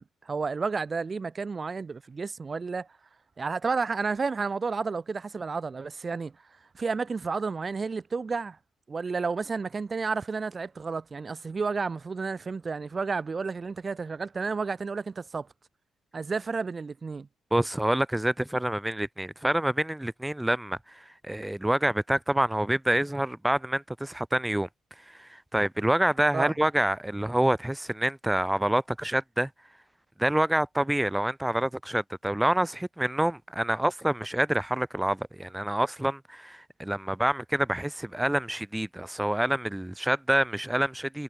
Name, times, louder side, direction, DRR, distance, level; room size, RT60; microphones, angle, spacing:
voice 1, 0.0-2.9 3.4-6.3 6.7-8.6 8.9-15.5 16.1-17.3 26.3-26.5, right 4 dB, 35° right, 2.2 m, -31 dB
voice 2, 17.5-24.7 25.1-29.5 30.2-41.2, right 1 dB, 5° right, 0.6 m, -27 dB
cardioid pair, 90°, 0 cm